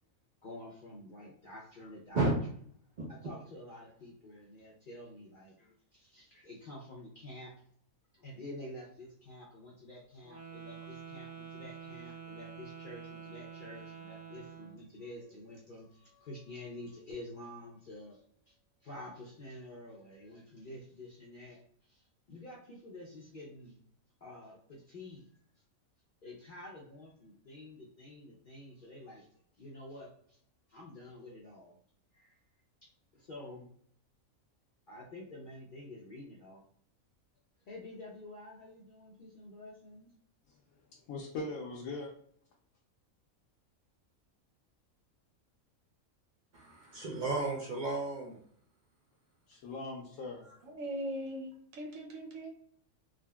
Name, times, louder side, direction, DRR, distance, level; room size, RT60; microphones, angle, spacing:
voice 1, 0.4-2.3 3.1-7.5 8.1-18.5 18.8-23.7 24.2-25.3 26.2-29.3 29.6-30.4 30.7-31.8 32.1-32.4 33.1-33.7 34.9-36.6 37.7-40.1, left 1 dB, 55° left, 0.6 m, -49 dB
Wind instrument woodwind instrument, 10.2-14.8, right 7 dB, 30° right, 1.2 m, -48 dB
voice 2, 40.5-42.1 49.5-50.5, left 3 dB, 80° left, 1.0 m, -41 dB
voice 3, 46.5-48.4, right 2 dB, 60° right, 0.5 m, -32 dB
voice 4, 50.6-52.5, equal, 75° right, 1.1 m, -40 dB
3.6 x 2.1 x 2.2 m
omnidirectional pair, 1.4 m